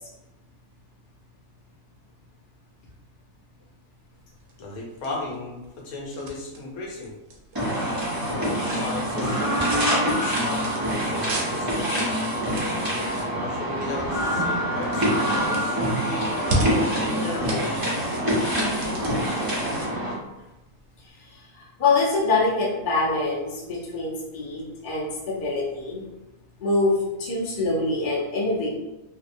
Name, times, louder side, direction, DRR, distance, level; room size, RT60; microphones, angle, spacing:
sound 1, 4.2-21.1, right 1 dB, 70° right, 0.9 m, -37 dB
voice 1, 4.6-7.2 8.3-12.1 13.1-17.8, left 2 dB, 80° left, -2 dB, 1.1 m, -35 dB
sound 2, 7.5-20.1, equal, 30° right, 0.4 m, -25 dB
voice 2, 21.0-26.0 26.6-28.7, left 3 dB, 50° left, -4 dB, 0.7 m, -25 dB
2.7 x 2.1 x 2.5 m, 1.0 s
omnidirectional pair, 1.5 m